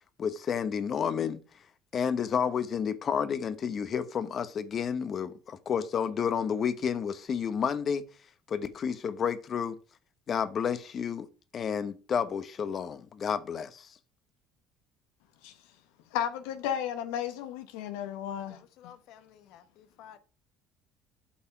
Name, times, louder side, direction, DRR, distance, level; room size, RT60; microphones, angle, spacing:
voice 1, 0.2-1.4 1.9-8.0 8.5-9.8 10.3-11.3 11.5-13.9, left 7 dB, 45° left, 1.0 m, -30 dB
voice 2, 16.1-18.6, left 9 dB, 85° left, 0.9 m, -33 dB
voice 3, 18.5-20.2, left 10 dB, 70° left, 1.2 m, -53 dB
8.5 x 5.6 x 5.9 m
supercardioid pair, 95°, 0 cm